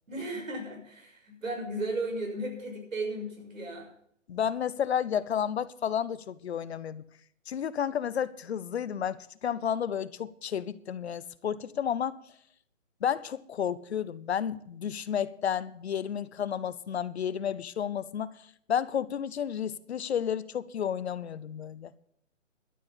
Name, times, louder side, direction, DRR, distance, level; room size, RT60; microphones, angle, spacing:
voice 1, 0.1-3.9, right 1 dB, 85° right, 6.4 m, -35 dB
voice 2, 4.3-7.0 7.5-12.2 13.0-21.9, left 8 dB, 55° left, 0.7 m, -31 dB
12.0 x 7.7 x 8.8 m
hypercardioid pair, 155°, 39 cm